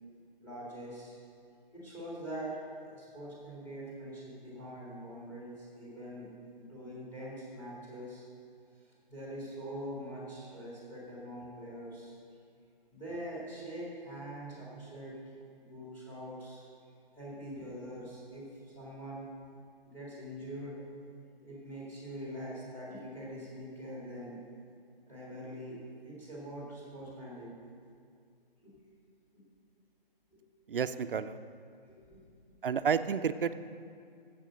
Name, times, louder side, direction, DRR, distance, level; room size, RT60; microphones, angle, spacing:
voice 1, 0.4-1.2 1.7-6.3 6.6-8.3 9.1-12.2 12.9-15.2 15.6-16.7 17.2-19.4 19.9-20.8 21.4-24.4 25.1-27.5 28.6-28.8 29.3-29.4 30.3-30.4 31.9-32.2, equal, 5° left, -6 dB, 2.5 m, -43 dB
voice 2, 30.7-31.4 32.6-33.5, right 6 dB, 65° right, 12 dB, 0.6 m, -30 dB
14.0 x 7.6 x 5.1 m, 2.3 s
hypercardioid pair, 160°, 29 cm